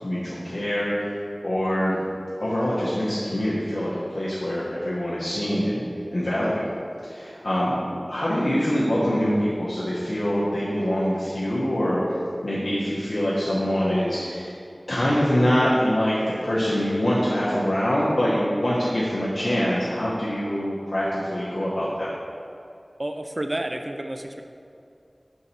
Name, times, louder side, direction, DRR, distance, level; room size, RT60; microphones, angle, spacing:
voice 1, 0.0-1.1 1.4-2.0 2.4-5.8 6.1-6.6 7.0-14.5 14.9-22.1, equal, 70° left, -9 dB, 0.9 m, -24 dB
voice 2, 23.0-24.4, right 1 dB, 40° right, 6 dB, 0.4 m, -30 dB
5.9 x 3.9 x 4.3 m, 2.5 s
wide cardioid pair, 45°, 0 cm